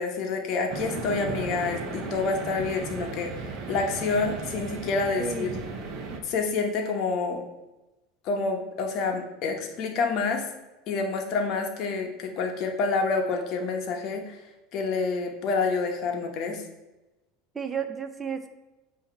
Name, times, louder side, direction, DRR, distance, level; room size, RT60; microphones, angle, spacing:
voice 1, 0.0-5.5 6.2-7.4 8.2-10.5 10.9-14.4 14.7-16.6, left 4 dB, 45° left, 3 dB, 0.9 m, -28 dB
sound 1, 0.7-6.2, right 4 dB, 45° right, 0.9 m, -35 dB
voice 2, 5.2-5.6 17.5-18.5, right 6 dB, 15° right, 8 dB, 0.5 m, -32 dB
7.7 x 2.8 x 5.8 m, 1.0 s
supercardioid pair, 145°, 0 cm